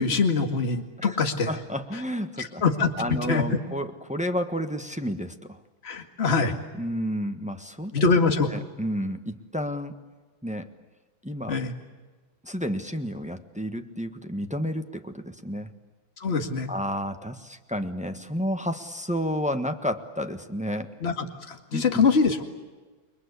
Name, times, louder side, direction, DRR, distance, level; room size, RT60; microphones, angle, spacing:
voice 1, 0.0-1.5 2.4-3.5 5.8-6.5 7.9-8.5 11.5-11.7 16.2-16.7 21.0-22.4, left 4 dB, 30° left, 5 dB, 2.2 m, -24 dB
voice 2, 1.4-2.6 3.0-5.6 6.8-7.9 8.5-9.9 10.4-10.7 11.2-11.5 12.4-15.7 16.7-20.9 21.7-22.0, equal, 5° right, 7 dB, 0.9 m, -31 dB
29.5 x 23.0 x 8.3 m, 1.3 s
omnidirectional pair, 2.4 m